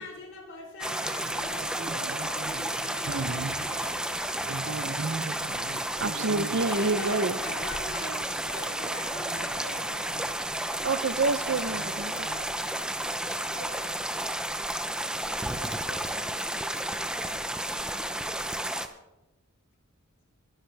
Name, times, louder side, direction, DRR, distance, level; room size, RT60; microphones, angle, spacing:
voice 1, 0.0-4.1 6.7-10.0 13.5-13.8 15.5-16.4, left 2 dB, 60° left, 3.9 m, -42 dB
sound 1, 0.8-18.9, right 1 dB, 5° right, 0.7 m, -32 dB
voice 2, 1.2-3.8 4.2-7.9 9.2-9.5 10.1-10.3 10.6-12.6, right 3 dB, 60° right, 0.7 m, -32 dB
21.5 x 11.5 x 3.5 m
head